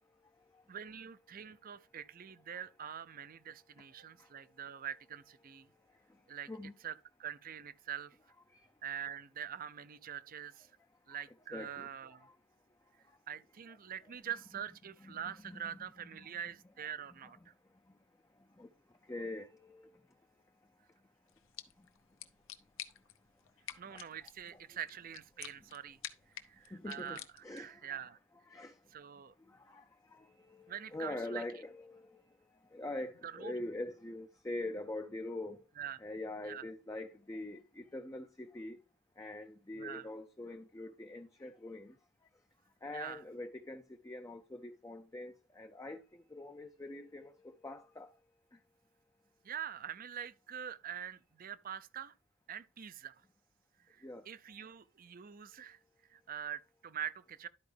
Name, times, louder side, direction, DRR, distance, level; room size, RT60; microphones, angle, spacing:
voice 1, 0.7-5.7 6.3-6.5 6.8-6.9 7.2-8.2 8.8-10.7 11.1-12.3 13.3-17.5 23.8-26.0 26.4-27.2 27.5-28.2 28.9-29.3 30.7-31.4 33.2-33.5 35.8-36.0 36.5-36.6 39.7-40.1 42.9-43.2 49.4-52.1 52.5-53.2 53.9-55.8 56.1-57.5, right 9 dB, 40° right, 0.5 m, -44 dB
voice 2, 11.5-12.4 13.0-13.2 13.7-13.8 15.0-16.3 17.2-17.5 18.6-20.0 21.8-21.9 23.7-24.1 24.5-24.8 26.7-28.1 28.5-28.8 29.4-32.2 32.7-35.6 36.0-38.8 39.2-42.0 42.8-48.2 48.5-48.6 54.0-54.3, left 2 dB, 15° left, 0.5 m, -44 dB
sound 1, 21.3-27.8, left 11 dB, 65° left, 0.8 m, -51 dB
12.0 x 4.7 x 3.3 m
head